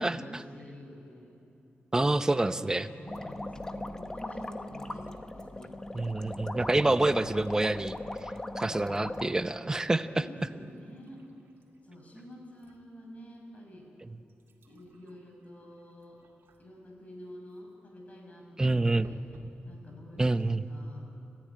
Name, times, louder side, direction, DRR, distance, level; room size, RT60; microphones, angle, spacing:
voice 1, 0.0-1.4 2.9-5.8 8.6-9.1 10.0-11.2 11.8-13.9 14.6-16.2 16.6-19.2 19.6-21.1, left 1 dB, 40° left, 1 dB, 6.2 m, -49 dB
voice 2, 1.9-2.9 5.9-8.0 8.6-10.2 18.6-19.1 20.2-20.7, right 2 dB, 15° right, 11 dB, 0.7 m, -27 dB
sound 1, 3.1-9.3, left 1 dB, 15° left, 1.0 m, -39 dB
sound 2, 4.9-5.3 6.2-7.1 7.5-8.0 8.7-8.9 9.3-12.8 13.3-13.4 14.1-16.8 19.0-19.6 20.2-20.3 20.6-20.7, right 2 dB, 85° right, 2.6 m, -53 dB
29.5 x 14.0 x 9.9 m, 2.8 s
wide cardioid pair, 120°, 4 cm